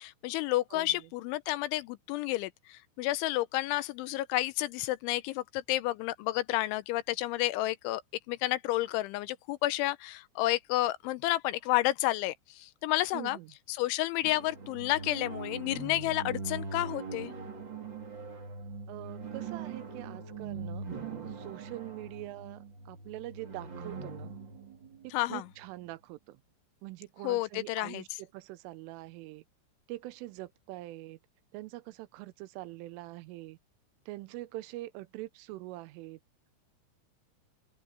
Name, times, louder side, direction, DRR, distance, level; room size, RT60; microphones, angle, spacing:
voice 1, 0.0-8.0 8.3-13.4 13.7-17.3 25.1-25.4 27.2-28.0, left 17 dB, 80° left, 2.9 m, -31 dB
voice 2, 0.7-1.1 13.1-13.5 18.9-24.3 25.0-26.4 26.8-29.4 29.9-31.2 31.5-33.6 34.1-36.2, right 17 dB, 85° right, 3.3 m, -44 dB
sound 1, 14.2-25.9, right 4 dB, 35° right, 2.2 m, -42 dB
open air
omnidirectional pair, 5.7 m